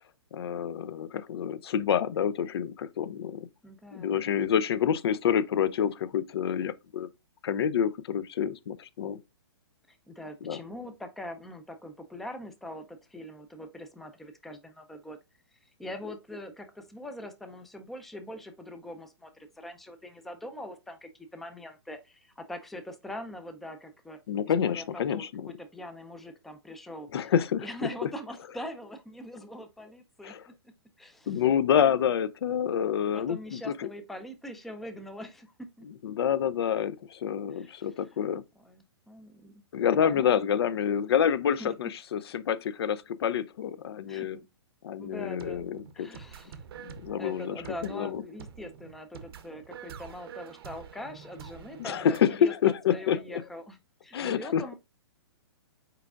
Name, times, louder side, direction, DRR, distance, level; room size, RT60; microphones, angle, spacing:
voice 1, 0.3-3.5 3.9-7.1 7.4-9.2 10.4-10.6 24.3-25.5 27.1-27.6 30.2-30.4 31.3-33.9 36.0-38.4 39.7-44.4 44.8-46.1 46.8-47.6 47.9-48.2 51.8-53.2 54.1-54.7, left 8 dB, 65° left, 0.4 m, -27 dB
voice 2, 3.6-4.5 9.9-15.2 15.6-24.2 24.6-27.1 27.6-30.3 31.0-31.4 33.0-35.9 37.5-38.2 38.6-39.6 40.0-40.3 41.6-41.9 44.1-44.4 45.0-45.7 45.9-46.7 47.0-54.7, left 1 dB, ahead, 0.4 m, -43 dB
sound 1, 45.1-52.2, right 7 dB, 65° right, 0.7 m, -47 dB
4.7 x 4.6 x 2.3 m
hypercardioid pair, 140°, 14 cm